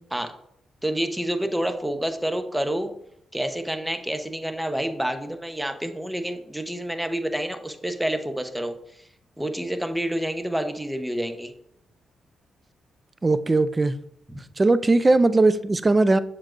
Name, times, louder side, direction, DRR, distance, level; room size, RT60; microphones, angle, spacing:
voice 1, 0.8-2.9 3.3-8.7 9.4-11.5 14.3-14.4, right 1 dB, 5° right, 7 dB, 0.9 m, -28 dB
voice 2, 13.2-13.9 14.6-16.2, right 2 dB, 25° right, 14 dB, 0.4 m, -19 dB
7.4 x 7.3 x 2.6 m, 0.73 s
cardioid pair, 65°, 0 cm